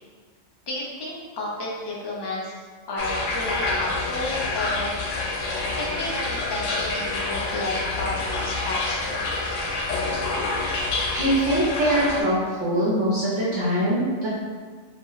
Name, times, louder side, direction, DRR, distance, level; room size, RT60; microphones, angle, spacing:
voice 1, 0.7-2.6 2.9-4.9 5.7-9.2, left 2 dB, 40° left, -4 dB, 0.3 m, -32 dB
sound 1, 3.0-12.2, left 3 dB, 90° left, 0.9 m, -27 dB
voice 2, 11.1-14.3, right 1 dB, 75° right, -8 dB, 1.1 m, -23 dB
2.7 x 2.0 x 3.8 m, 1.5 s
omnidirectional pair, 1.2 m